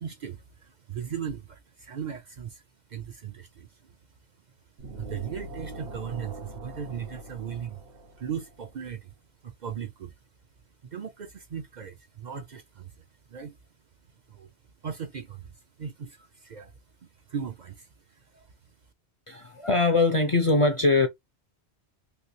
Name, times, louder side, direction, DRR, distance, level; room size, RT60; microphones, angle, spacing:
voice 1, 0.0-2.6 2.9-4.0 4.9-7.8 8.2-9.1 9.4-10.1 10.9-13.6 14.3-14.5 14.8-15.5 15.8-16.7 17.0-17.9 18.3-18.5, right 7 dB, 50° right, 0.6 m, -37 dB
sound 1, 4.8-8.6, right 1 dB, 65° right, 1.1 m, -42 dB
voice 2, 19.3-21.1, left 3 dB, 40° left, 0.5 m, -22 dB
3.2 x 3.1 x 2.6 m
omnidirectional pair, 1.1 m